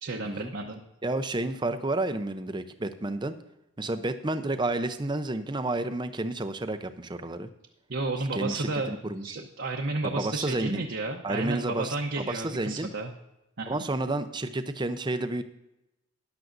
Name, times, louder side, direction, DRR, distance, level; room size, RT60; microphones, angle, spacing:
voice 1, 0.0-0.8 7.9-8.9 9.2-13.1 13.6-13.8, right 2 dB, 50° right, 1 dB, 0.8 m, -32 dB
voice 2, 1.0-3.3 3.8-7.5 8.3-9.3 10.0-10.8 11.2-12.9 13.7-15.4, right 2 dB, 20° right, 9 dB, 0.5 m, -30 dB
14.0 x 10.5 x 2.6 m, 0.91 s
head